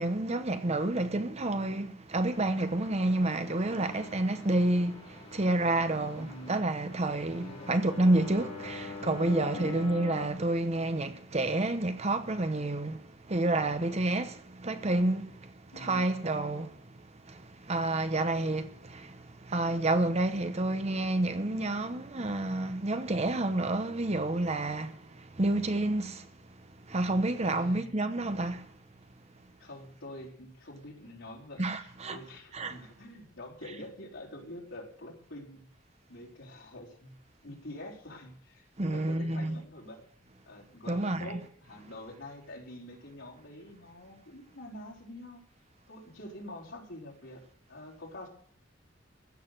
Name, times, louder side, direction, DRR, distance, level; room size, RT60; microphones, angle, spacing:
voice 1, 0.0-16.8 17.2-26.3 26.9-28.7 31.6-32.2 32.5-32.8 38.8-39.6 40.9-41.4, right 2 dB, 35° right, 0.9 m, -29 dB
sound 1, 2.3-10.3, left 4 dB, 35° left, 4.0 m, -44 dB
voice 2, 6.2-6.6 7.4-7.9 9.5-9.9 15.7-16.1 27.5-27.9 29.6-35.6 36.1-37.1 37.4-40.0 40.5-45.4 45.9-47.4 47.7-48.3, left 1 dB, 85° left, 4.0 m, -46 dB
15.5 x 6.6 x 9.1 m
head